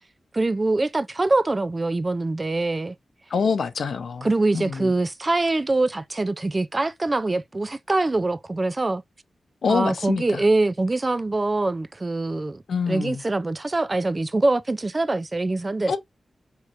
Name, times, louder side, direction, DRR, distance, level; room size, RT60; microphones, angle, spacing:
voice 1, 0.3-2.9 4.2-9.0 9.7-12.6 12.9-15.9, right 2 dB, 25° right, 0.4 m, -24 dB
voice 2, 3.3-4.3 4.5-5.0 9.6-10.4 12.7-13.2 15.9-16.0, left 5 dB, 80° left, 0.8 m, -25 dB
4.7 x 3.2 x 2.5 m
wide cardioid pair, 115°, 0 cm